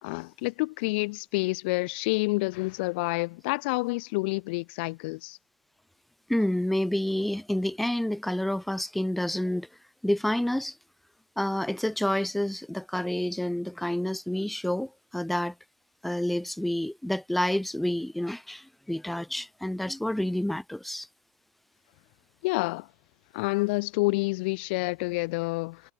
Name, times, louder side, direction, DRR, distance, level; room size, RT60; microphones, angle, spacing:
voice 1, 0.0-5.4 22.4-22.9 23.3-25.8, left 25 dB, 70° left, 0.7 m, -28 dB
voice 2, 6.3-9.7 10.0-10.8 11.4-15.5 16.0-21.1, left 1 dB, ahead, 0.7 m, -29 dB
supercardioid pair, 150°, 6 cm